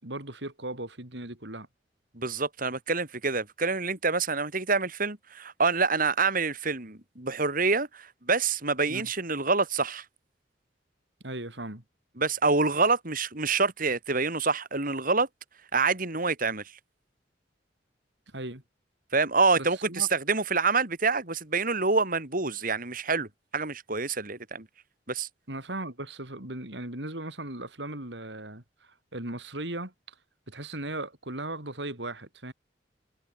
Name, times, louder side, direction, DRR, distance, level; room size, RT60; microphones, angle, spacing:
voice 1, 0.0-1.7 8.9-9.1 11.2-11.8 18.3-18.6 19.6-20.1 25.5-29.9 30.5-32.5, right 1 dB, 70° right, 6.3 m, -37 dB
voice 2, 2.1-10.0 12.2-15.3 15.7-16.6 19.1-24.7 25.1-25.3, right 4 dB, 50° right, 4.9 m, -27 dB
head